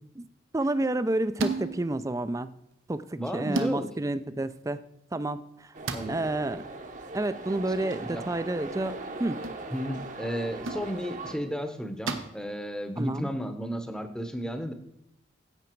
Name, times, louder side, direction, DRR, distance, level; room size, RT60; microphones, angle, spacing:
voice 1, 0.5-2.5 2.9-4.8 5.1-5.7 6.1-6.7 7.1-9.4 13.0-13.3, right 2 dB, 15° right, 14 dB, 0.4 m, -30 dB
sound 1, 1.4-2.0 3.6-3.8 5.9-6.6 9.4-9.6 10.7-10.9 12.1-12.4, right 2 dB, 90° right, 1.0 m, -32 dB
voice 2, 3.2-3.9 5.9-6.1 7.8-8.2 9.7-14.7, equal, 5° left, 8 dB, 0.8 m, -33 dB
sound 2, 5.7-11.4, right 2 dB, 40° right, 0.9 m, -40 dB
11.0 x 8.1 x 4.5 m, 0.83 s
head